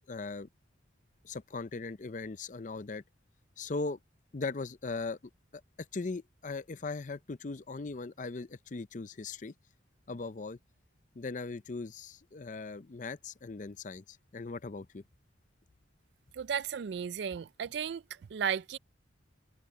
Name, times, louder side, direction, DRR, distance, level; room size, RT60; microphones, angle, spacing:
voice 1, 0.1-0.5 1.2-3.0 3.6-4.0 4.3-5.2 5.9-9.5 10.1-10.6 11.1-15.0, left 3 dB, 40° left, 0.5 m, -39 dB
voice 2, 16.3-18.8, right 7 dB, 60° right, 0.3 m, -34 dB
head